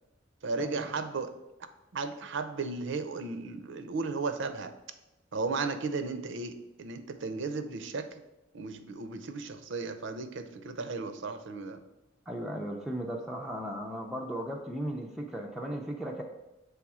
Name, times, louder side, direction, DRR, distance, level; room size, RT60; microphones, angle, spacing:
voice 1, 0.4-1.3 1.9-4.7 5.3-8.2 8.5-11.8, right 4 dB, 60° right, 10 dB, 0.5 m, -35 dB
voice 2, 12.3-16.2, equal, ahead, -1 dB, 0.4 m, -36 dB
7.2 x 3.4 x 4.8 m, 0.96 s
head